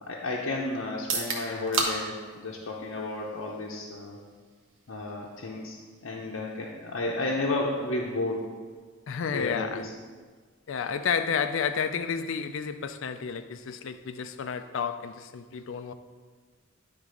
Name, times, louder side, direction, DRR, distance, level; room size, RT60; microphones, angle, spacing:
voice 1, 0.0-4.2 4.9-5.8 6.0-8.5 9.3-9.9, left 2 dB, 85° left, -3 dB, 0.8 m, -32 dB
sound 1, 0.9-14.8, right 4 dB, 80° right, 1.1 m, -40 dB
voice 2, 9.1-9.9 10.7-15.9, left 6 dB, 65° left, 10 dB, 0.4 m, -31 dB
9.9 x 3.6 x 5.0 m, 1.5 s
head